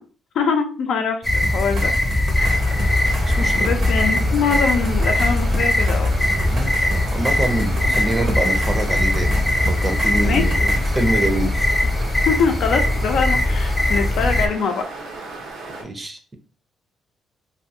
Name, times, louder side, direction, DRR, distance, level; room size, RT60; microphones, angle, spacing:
voice 1, 0.3-1.9 2.4-2.6 3.6-6.1 10.2-10.4 12.3-14.8, left 5 dB, 75° left, 4 dB, 0.5 m, -23 dB
sound 1, 1.2-14.5, left 1 dB, 20° left, 0.4 m, -20 dB
sound 2, 1.4-11.0 12.4-12.5, right 2 dB, 60° right, 0.7 m, -31 dB
sound 3, 2.4-15.8, right 3 dB, 90° right, 0.8 m, -35 dB
voice 2, 3.2-3.7 6.5-6.7 7.1-11.7 15.8-16.4, right 1 dB, 25° right, 6 dB, 0.6 m, -25 dB
2.5 x 2.4 x 2.7 m, 0.37 s
cardioid pair, 90°, 0 cm